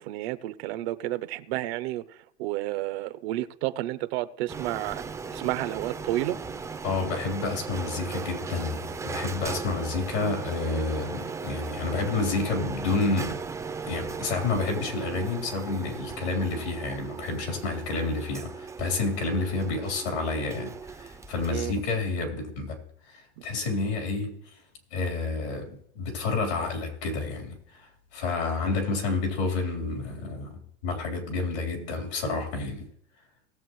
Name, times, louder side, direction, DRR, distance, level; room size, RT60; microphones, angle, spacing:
voice 1, 0.0-2.0 2.4-5.0 5.3-6.4 21.5-21.7, right 15 dB, 65° right, 0.7 m, -31 dB
Printer, 4.5-22.2, right 5 dB, 10° right, 0.4 m, -37 dB
voice 2, 6.8-13.4 13.9-22.8 23.1-24.4 24.9-32.9, left 3 dB, 85° left, 3.8 m, -29 dB
19.0 x 7.5 x 3.1 m
supercardioid pair, 130°, 33 cm